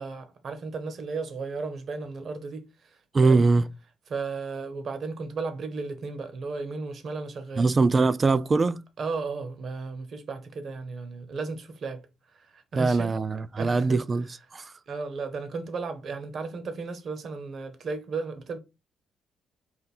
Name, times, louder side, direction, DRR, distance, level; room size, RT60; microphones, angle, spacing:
voice 1, 0.0-2.7 3.2-3.4 4.1-7.7 9.0-12.0 12.4-13.1 13.6-14.0 14.9-18.6, right 4 dB, 55° right, 0.8 m, -34 dB
voice 2, 3.1-3.7 7.6-8.8 12.7-14.7, right 3 dB, 35° right, 0.3 m, -22 dB
4.1 x 2.5 x 4.1 m
cardioid pair, 90°, 0 cm